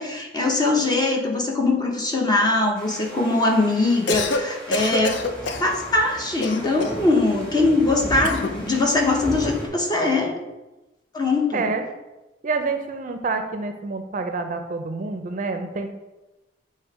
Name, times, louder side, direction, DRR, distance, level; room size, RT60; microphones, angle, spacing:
voice 1, 0.0-5.2 5.6-10.4 11.1-11.7, left 2 dB, 25° left, 0 dB, 0.9 m, -21 dB
sound 1, 2.8-9.7, equal, 5° left, 1.5 m, -35 dB
Cough, 3.9-4.4 4.7-5.7 6.4-7.1 8.2-8.6, left 3 dB, 75° left, 0.5 m, -26 dB
voice 2, 11.5-11.9 12.4-15.9, right 3 dB, 45° right, 6 dB, 0.5 m, -27 dB
7.9 x 2.8 x 4.7 m, 1.0 s
head